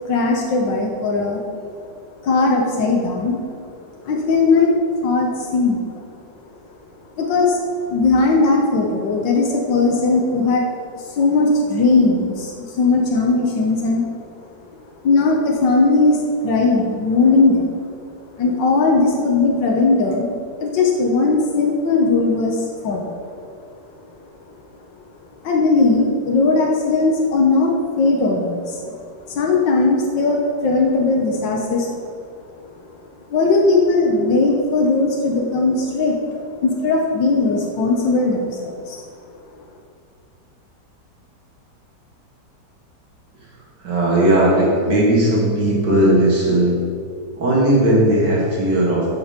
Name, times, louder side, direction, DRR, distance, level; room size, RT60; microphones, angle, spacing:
voice 1, 0.1-1.4 2.2-3.5 4.0-5.8 7.2-7.6 7.9-10.7 11.0-14.1 15.0-17.8 18.4-20.4 20.6-23.2 25.4-28.9 29.3-32.0 33.3-39.0, left 3 dB, 90° left, 0 dB, 1.8 m, -18 dB
voice 2, 43.8-46.8 47.4-49.0, right 1 dB, 70° right, -4 dB, 3.1 m, -16 dB
11.5 x 6.9 x 5.1 m, 2.2 s
omnidirectional pair, 1.9 m